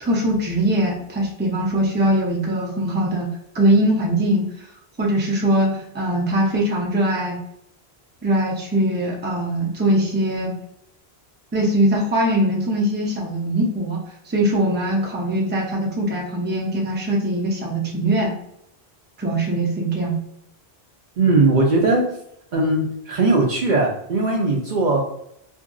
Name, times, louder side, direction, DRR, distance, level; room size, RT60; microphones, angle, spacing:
voice 1, 0.0-3.3 3.5-4.5 5.0-7.4 8.2-10.6 11.5-14.0 14.3-18.3 19.2-20.2, right 1 dB, 15° right, -2 dB, 0.5 m, -21 dB
voice 2, 21.2-22.0 22.5-25.0, right 2 dB, 55° right, -1 dB, 0.6 m, -19 dB
2.8 x 2.6 x 2.4 m, 0.74 s
omnidirectional pair, 1.1 m